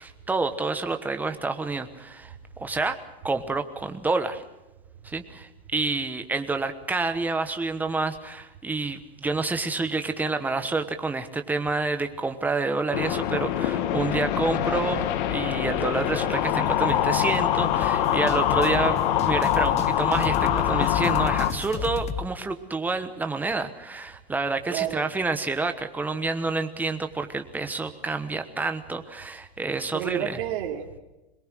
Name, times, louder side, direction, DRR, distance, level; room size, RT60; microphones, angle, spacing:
voice 1, 0.0-2.3 2.6-3.0 3.2-4.4 5.0-19.0 19.2-30.4, right 3 dB, 5° right, 1.1 m, -28 dB
sound 1, 12.9-21.5, left 11 dB, 55° left, 1.6 m, -24 dB
sound 2, 16.7-22.3, left 8 dB, 20° left, 1.0 m, -34 dB
voice 2, 24.7-25.1 29.9-31.0, right 10 dB, 55° right, 2.7 m, -30 dB
22.5 x 20.5 x 6.2 m
supercardioid pair, 155°, 30 cm